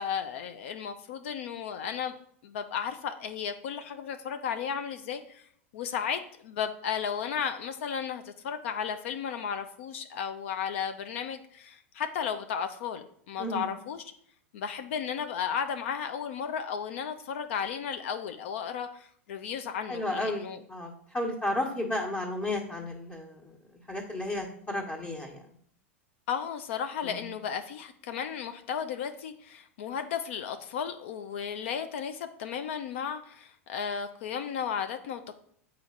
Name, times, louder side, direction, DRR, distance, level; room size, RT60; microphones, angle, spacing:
voice 1, 0.0-2.1 2.4-5.5 5.7-14.1 14.5-20.6 26.3-35.4, left 7 dB, 65° left, 8 dB, 0.6 m, -34 dB
voice 2, 19.9-23.5 23.9-25.4 27.0-27.2, left 1 dB, 25° left, -4 dB, 1.3 m, -33 dB
7.0 x 4.3 x 3.8 m, 0.63 s
hypercardioid pair, 95°, 7 cm